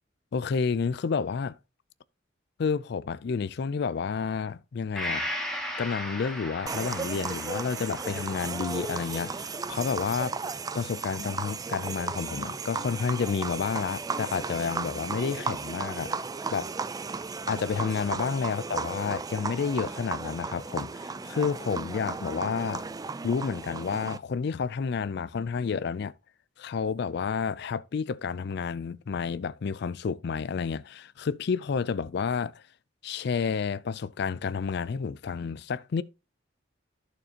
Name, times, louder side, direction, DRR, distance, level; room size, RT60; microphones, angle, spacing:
voice 1, 0.3-1.6 2.6-5.3 5.8-16.2 16.5-16.7 17.5-22.8 23.2-26.1 26.6-32.6 33.0-36.0, left 5 dB, 60° left, 0.4 m, -30 dB
Gong, 5.0-12.6 13.0-13.1, left 1 dB, 5° left, 2.0 m, -39 dB
sound 1, 6.7-24.2, right 4 dB, 20° right, 0.4 m, -35 dB
11.5 x 6.6 x 2.8 m
head